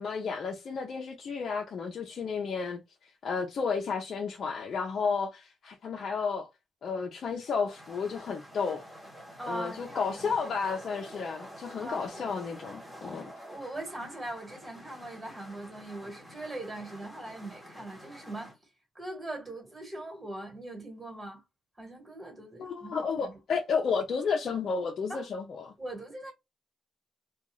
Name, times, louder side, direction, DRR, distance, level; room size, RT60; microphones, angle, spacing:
voice 1, 0.0-6.5 6.8-8.8 9.5-13.3 22.6-25.7, left 5 dB, 55° left, 0.6 m, -32 dB
sound 1, 7.5-18.6, equal, 5° left, 1.0 m, -48 dB
voice 2, 9.4-10.3 11.8-12.1 13.1-18.6 18.9-21.4 21.8-23.4 25.1-25.2 25.8-26.3, right 1 dB, 20° right, 1.4 m, -41 dB
2.4 x 2.3 x 3.0 m
cardioid pair, 115°, 0 cm